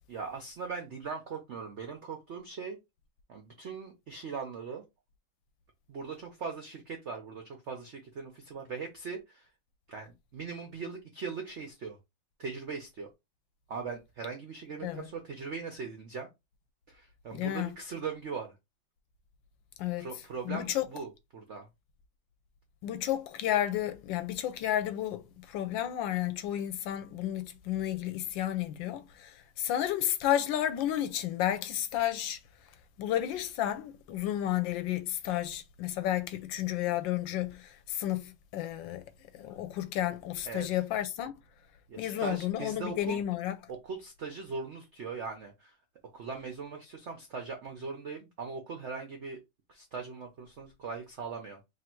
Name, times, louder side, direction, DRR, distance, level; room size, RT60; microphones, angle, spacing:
voice 1, 0.1-2.8 3.3-4.8 5.9-9.4 9.9-12.0 12.4-13.1 13.7-16.3 16.9-18.5 20.0-21.6 40.5-40.7 41.9-43.2 43.7-45.7 46.1-49.4 49.7-51.6, right 5 dB, 85° right, 0.6 m, -40 dB
voice 2, 17.3-17.7 19.8-20.1 20.4-20.9 22.8-32.4 33.0-39.0 39.3-41.3 42.0-43.6, left 12 dB, 75° left, 1.3 m, -32 dB
3.3 x 2.5 x 4.3 m
omnidirectional pair, 2.2 m